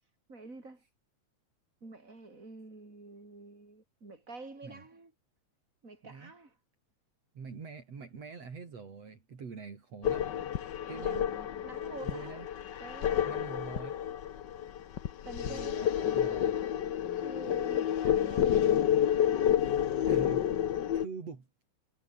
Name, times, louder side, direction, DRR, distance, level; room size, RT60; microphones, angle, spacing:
voice 1, 0.3-0.8 1.8-5.1 5.8-6.5 10.9-12.4 12.8-13.4 15.3-16.8 17.1-18.7, right 3 dB, 25° right, 6.0 m, -47 dB
voice 2, 7.3-10.3 10.9-11.2 12.0-12.5 13.3-14.0 15.4-15.8 16.1-16.6 20.1-20.5 20.9-21.5, right 5 dB, 60° right, 4.7 m, -44 dB
sound 1, 10.0-21.0, left 10 dB, 60° left, 1.2 m, -29 dB
omnidirectional pair, 3.3 m